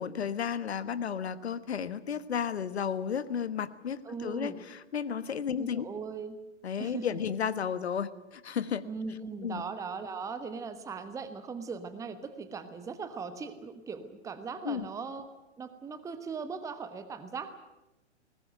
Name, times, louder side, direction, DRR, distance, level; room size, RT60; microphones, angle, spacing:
voice 1, 0.0-5.9 6.6-8.8 9.4-9.6 14.6-14.9, left 7 dB, 65° left, 14 dB, 1.4 m, -33 dB
voice 2, 4.0-4.6 5.6-6.4 6.8-7.2 8.8-15.3 15.6-17.5, right 5 dB, 10° right, 11 dB, 1.2 m, -39 dB
20.5 x 20.0 x 9.1 m, 0.95 s
figure-of-eight pair, 115°, 35 cm